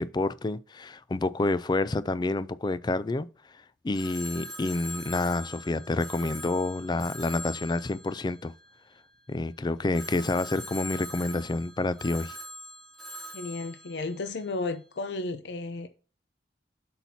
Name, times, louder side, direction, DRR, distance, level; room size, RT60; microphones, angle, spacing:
voice 1, 0.0-3.3 3.8-8.5 9.3-12.4, left 2 dB, 25° left, 0.4 m, -28 dB
Telephone, 3.9-9.2 9.9-14.8, equal, 5° left, 2.7 m, -43 dB
voice 2, 13.3-15.9, left 3 dB, 75° left, 0.6 m, -33 dB
8.3 x 5.8 x 2.7 m
head